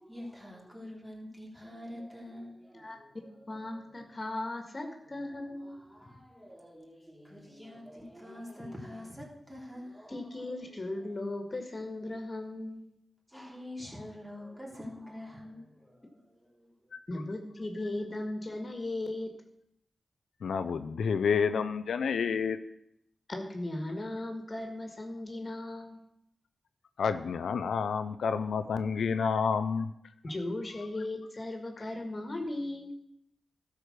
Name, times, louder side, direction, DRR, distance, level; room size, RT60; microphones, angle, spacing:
voice 1, 0.0-4.1 5.1-11.2 13.3-16.9, left 1 dB, 10° right, 3.6 m, -47 dB
voice 2, 3.5-5.8 10.1-13.0 17.1-19.3 23.3-26.0 30.2-32.9, left 2 dB, 40° left, 1.8 m, -37 dB
voice 3, 20.4-22.6 27.0-29.9, left 6 dB, 85° left, 0.4 m, -29 dB
12.0 x 4.8 x 6.6 m
cardioid pair, 45°, 0 cm